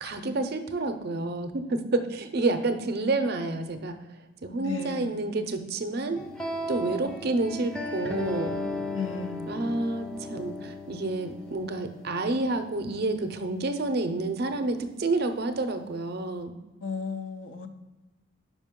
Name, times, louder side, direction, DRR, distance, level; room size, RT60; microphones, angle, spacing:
voice 1, 0.0-4.0 4.4-6.2 6.7-8.6 9.5-16.5, right 2 dB, 50° right, 7 dB, 0.5 m, -29 dB
voice 2, 4.6-5.2 8.9-9.8 16.8-17.7, left 5 dB, 70° left, 8 dB, 0.6 m, -35 dB
sound 1, 6.1-13.2, left 1 dB, 5° left, 0.4 m, -36 dB
5.2 x 5.1 x 3.6 m, 1.1 s
head